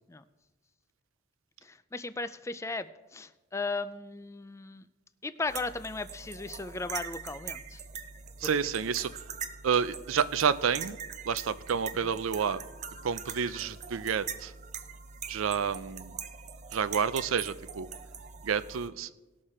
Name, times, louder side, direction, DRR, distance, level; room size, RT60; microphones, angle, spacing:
voice 1, 1.6-4.9 5.2-7.8 8.4-8.5, left 3 dB, 15° left, 13 dB, 0.3 m, -36 dB
sound 1, 5.5-18.9, right 6 dB, 35° right, 0.6 m, -42 dB
voice 2, 8.4-9.2 9.6-11.0 11.2-12.6 13.0-14.5 15.3-16.1 16.7-17.9 18.4-19.1, right 7 dB, 75° right, 15 dB, 0.5 m, -29 dB
18.5 x 6.6 x 4.3 m, 1.1 s
head